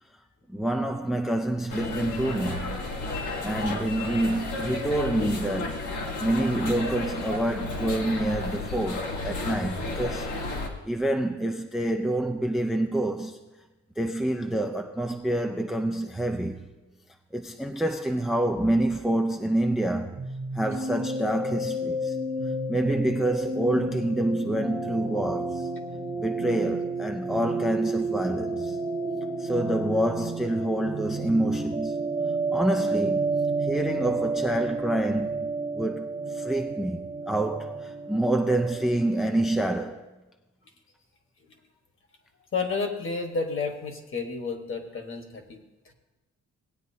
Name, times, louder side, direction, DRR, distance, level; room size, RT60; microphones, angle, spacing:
voice 1, 0.5-2.8 3.4-10.3 10.8-13.4 14.0-16.7 17.3-20.2 20.5-22.2 22.7-25.7 26.2-28.8 29.4-32.1 32.5-33.3 33.6-40.0, right 1 dB, ahead, 0.4 m, -27 dB
sound 1, 1.7-10.7, left 2 dB, 80° left, 1.6 m, -32 dB
sound 2, 20.2-39.7, right 2 dB, 25° right, 1.0 m, -31 dB
voice 2, 42.5-45.9, left 4 dB, 45° left, 1.3 m, -31 dB
17.5 x 9.2 x 2.8 m
wide cardioid pair, 160°, 30 cm